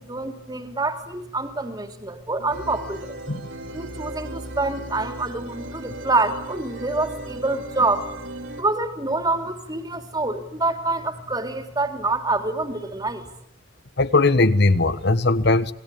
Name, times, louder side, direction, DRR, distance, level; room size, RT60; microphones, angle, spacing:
voice 1, 0.0-3.2 3.7-8.1 8.6-13.3, right 2 dB, 20° right, 3.3 m, -26 dB
sound 1, 2.5-8.6, right 1 dB, 65° right, 3.7 m, -36 dB
voice 2, 14.0-15.7, left 2 dB, 55° left, 1.4 m, -19 dB
28.5 x 21.0 x 8.7 m
head